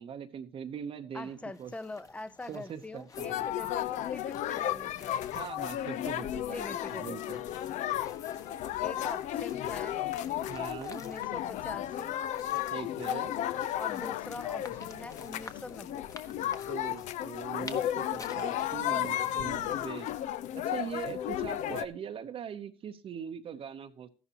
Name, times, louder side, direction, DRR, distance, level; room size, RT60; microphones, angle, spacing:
voice 1, 0.0-1.7 2.5-3.5 5.3-7.4 10.5-11.0 12.7-13.3 16.6-20.1 20.5-24.1, right 8 dB, 45° right, 0.9 m, -41 dB
voice 2, 1.1-5.5 6.3-7.2 8.8-10.0 10.9-12.2 13.8-16.1, left 2 dB, 10° left, 0.6 m, -43 dB
sound 1, 1.2-19.8, left 3 dB, 25° left, 1.2 m, -53 dB
sound 2, 3.1-21.9, left 12 dB, 70° left, 0.7 m, -34 dB
14.0 x 11.0 x 2.9 m
cardioid pair, 115°, 13 cm